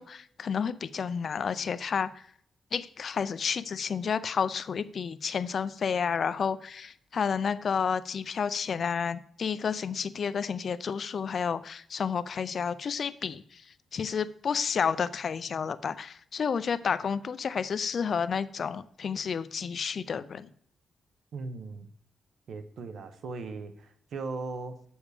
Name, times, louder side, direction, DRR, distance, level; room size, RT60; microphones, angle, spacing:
voice 1, 0.0-2.2 2.7-13.6 13.9-20.5, left 6 dB, 50° left, 0.4 m, -31 dB
voice 2, 21.3-21.9 22.5-24.8, right 3 dB, 70° right, 0.9 m, -38 dB
8.3 x 7.1 x 4.9 m
wide cardioid pair, 135°, 0 cm